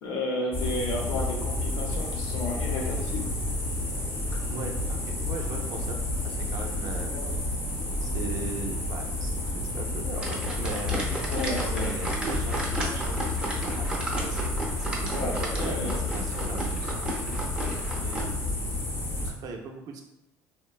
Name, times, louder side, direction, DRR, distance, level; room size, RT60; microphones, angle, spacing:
voice 1, 0.0-3.3 7.1-7.3 11.1-11.9 15.1-16.0, left 1 dB, 75° left, 0 dB, 0.7 m, -33 dB
sound 1, 0.5-19.3, left 2 dB, 30° left, 0.7 m, -30 dB
voice 2, 4.5-6.0 6.2-7.4 8.0-14.4 14.8-17.4 18.0-18.4 19.2-20.0, right 3 dB, 55° right, 2 dB, 0.5 m, -39 dB
sound 2, 10.1-18.2, right 1 dB, 15° right, 0.6 m, -34 dB
2.9 x 2.1 x 2.3 m, 0.86 s
cardioid pair, 100°, 7 cm